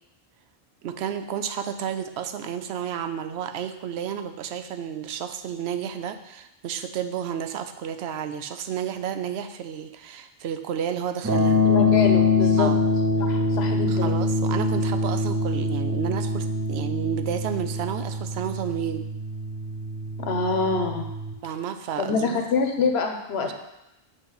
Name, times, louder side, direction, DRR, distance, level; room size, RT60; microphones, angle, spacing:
voice 1, 0.8-11.7 12.6-12.8 13.9-19.1 21.4-22.4 23.4-23.5, right 8 dB, 85° right, 9 dB, 0.8 m, -31 dB
sound 1, 11.2-21.3, left 3 dB, 20° right, 0.8 m, -24 dB
voice 2, 11.6-12.7 13.2-14.1 20.2-21.1 22.0-23.5, left 4 dB, 90° left, 4 dB, 1.1 m, -26 dB
8.2 x 3.1 x 5.5 m, 0.92 s
omnidirectional pair, 1.0 m